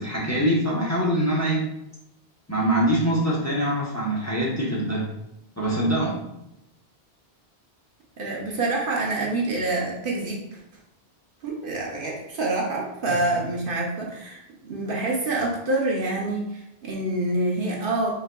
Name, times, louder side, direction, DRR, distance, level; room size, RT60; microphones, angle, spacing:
voice 1, 0.0-1.7 2.5-5.1 5.6-6.2 13.1-13.2, right 1 dB, 15° left, -5 dB, 0.8 m, -24 dB
voice 2, 8.2-10.6 11.4-18.1, right 2 dB, 60° right, -2 dB, 0.9 m, -27 dB
4.2 x 3.8 x 2.2 m, 0.87 s
omnidirectional pair, 1.1 m